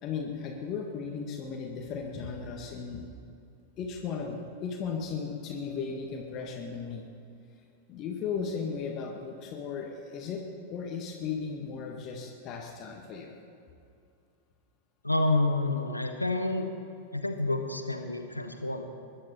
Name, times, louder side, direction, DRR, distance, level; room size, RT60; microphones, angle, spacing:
voice 1, 0.0-3.1 3.8-7.0 7.9-10.4 10.7-13.3, left 5 dB, 35° left, 1 dB, 1.8 m, -36 dB
voice 2, 15.0-16.7 17.1-18.8, left 2 dB, 85° left, 5 dB, 1.3 m, -28 dB
22.0 x 11.5 x 4.5 m, 2.5 s
figure-of-eight pair, 90°, 0 cm